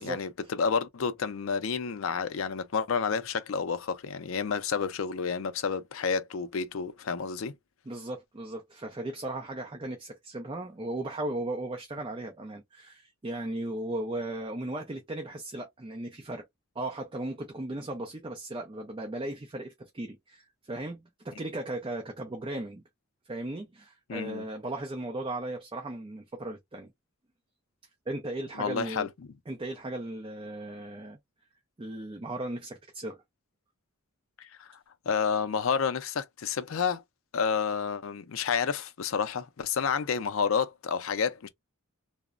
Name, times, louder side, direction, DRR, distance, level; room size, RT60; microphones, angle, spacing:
voice 1, 0.0-7.5 24.1-24.5 28.6-29.1 34.4-34.8 35.1-37.0 37.3-41.5, left 6 dB, 65° left, 0.4 m, -30 dB
voice 2, 7.9-16.4 16.8-22.8 23.2-26.9 28.1-29.1 29.5-31.2 31.8-33.2, right 1 dB, 25° right, 0.4 m, -36 dB
2.9 x 2.0 x 2.4 m
head